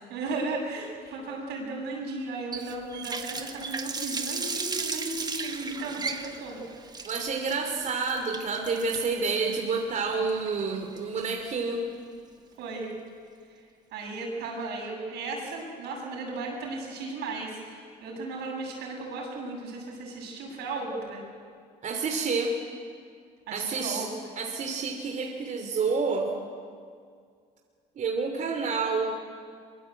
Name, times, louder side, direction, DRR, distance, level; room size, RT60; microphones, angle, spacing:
voice 1, 0.1-6.6 12.6-12.9 13.5-13.7 13.9-21.2 23.5-24.1, right 3 dB, 85° right, -1 dB, 8.0 m, -35 dB
Water tap faucet, 2.5-11.4, right 4 dB, 25° right, 1.6 m, -36 dB
voice 2, 7.0-11.8 21.8-22.5 23.5-24.1 24.4-26.3 28.0-29.1, right 4 dB, 50° right, 2 dB, 2.9 m, -29 dB
23.5 x 23.5 x 8.5 m, 2.2 s
cardioid pair, 110°, 17 cm